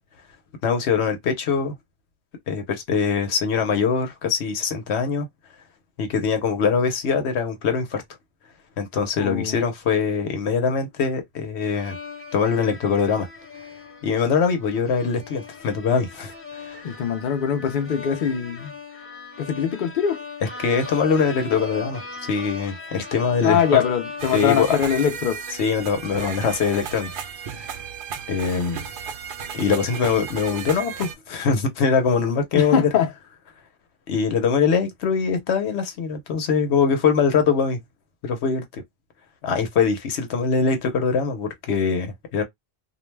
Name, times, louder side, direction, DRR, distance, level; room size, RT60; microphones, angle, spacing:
voice 1, 0.6-1.7 2.5-5.3 6.0-8.0 8.8-12.0 12.3-13.3 14.0-16.8 20.6-23.6 24.3-24.8 25.6-27.1 27.6-27.7 28.3-28.8 29.5-32.8 34.1-37.8 38.2-38.8 39.4-42.4, left 5 dB, 75° left, 1.0 m, -23 dB
voice 2, 9.2-9.6 16.8-18.8 19.4-20.2 23.4-25.4 32.5-33.1, left 8 dB, 55° left, 0.7 m, -22 dB
sound 1, 11.7-25.4, left 4 dB, 15° left, 0.6 m, -38 dB
sound 2, 24.2-31.1, right 7 dB, 60° right, 0.6 m, -34 dB
2.5 x 2.1 x 3.1 m
omnidirectional pair, 1.1 m